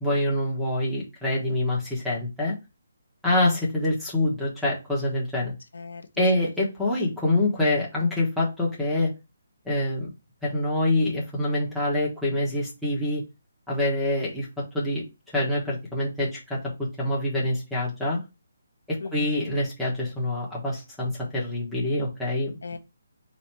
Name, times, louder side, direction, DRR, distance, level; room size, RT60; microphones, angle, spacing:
voice 1, 0.0-2.5 3.2-5.5 6.2-9.1 9.6-10.1 10.4-13.2 13.7-15.0 15.3-16.6 17.0-18.2 18.9-22.6, left 1 dB, ahead, -6 dB, 1.1 m, -26 dB
voice 2, 5.7-6.5 19.0-19.4 22.6-22.8, left 4 dB, 75° left, 8 dB, 0.8 m, -38 dB
4.1 x 2.8 x 4.4 m, 0.26 s
hypercardioid pair, 170°, 0 cm